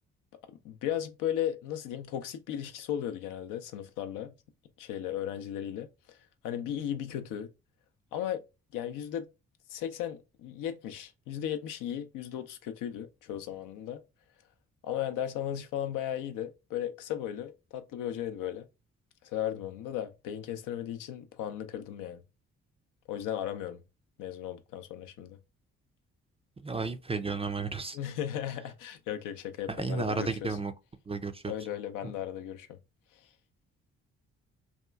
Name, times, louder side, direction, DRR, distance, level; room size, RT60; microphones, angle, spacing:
voice 1, 0.6-4.3 4.8-6.2 6.4-7.5 8.1-8.4 8.7-9.3 9.7-14.0 14.8-18.7 19.2-22.2 23.1-23.8 24.2-25.4 27.9-30.5 31.5-32.7, left 10 dB, 75° left, 0.5 m, -36 dB
voice 2, 26.6-28.0 29.7-30.7 31.1-31.4 32.0-32.1, right 4 dB, 20° right, 0.4 m, -33 dB
2.8 x 2.3 x 2.3 m
hypercardioid pair, 45°, 33 cm